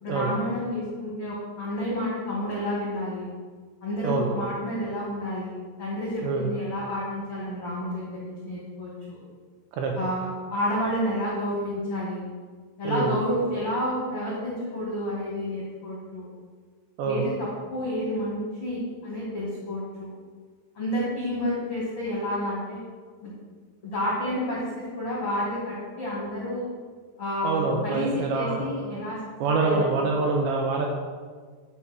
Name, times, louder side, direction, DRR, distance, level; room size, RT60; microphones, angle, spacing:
voice 1, 0.0-3.3 3.8-9.2 9.9-12.3 12.8-16.3 17.0-20.1 20.7-22.8 23.2-23.3 23.8-26.7 27.2-29.2 29.6-30.0, left 1 dB, 50° left, -6 dB, 1.7 m, -30 dB
voice 2, 27.4-29.0 29.4-30.9, right 3 dB, 80° right, 0 dB, 2.6 m, -26 dB
11.0 x 5.6 x 6.3 m, 1.5 s
omnidirectional pair, 6.0 m